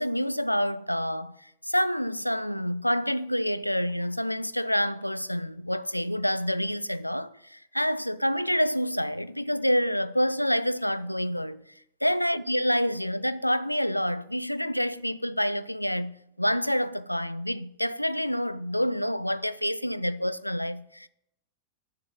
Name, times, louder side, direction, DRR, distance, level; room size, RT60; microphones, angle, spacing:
voice 1, 0.0-11.6 12.0-21.1, equal, 90° left, 0.3 m, -28 dB
8.0 x 6.8 x 5.4 m
figure-of-eight pair, 90°, 0 cm